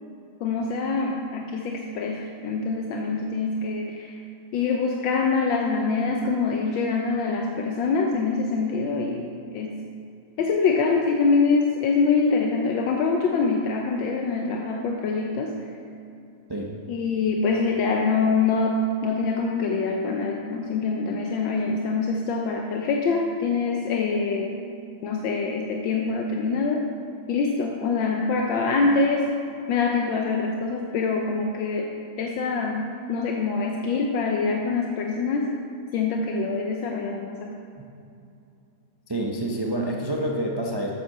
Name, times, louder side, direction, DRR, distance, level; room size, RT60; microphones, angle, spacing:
voice 1, 0.4-4.2 4.5-9.8 10.4-15.7 16.9-24.5 25.0-26.8 27.3-29.3 29.7-31.9 32.2-35.5 35.9-37.5, left 4 dB, 80° left, 1 dB, 1.5 m, -25 dB
voice 2, 39.1-40.9, right 1 dB, 40° right, -2 dB, 0.3 m, -27 dB
9.2 x 7.6 x 6.6 m, 2.6 s
omnidirectional pair, 2.1 m